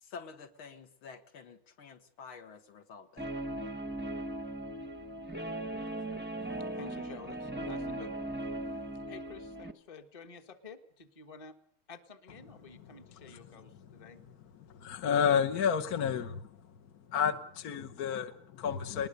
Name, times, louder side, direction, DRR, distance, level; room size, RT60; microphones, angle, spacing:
voice 1, 0.0-3.3, left 5 dB, 70° left, 7 dB, 2.3 m, -49 dB
Guitar, 3.2-9.7, right 1 dB, 10° right, 0.7 m, -38 dB
voice 2, 6.4-8.1 9.1-11.5 11.9-14.2, left 4 dB, 20° left, 8 dB, 1.1 m, -51 dB
voice 3, 14.7-16.6 17.1-19.1, left 7 dB, 55° left, 8 dB, 1.2 m, -30 dB
20.5 x 20.0 x 6.6 m, 0.64 s
omnidirectional pair, 2.4 m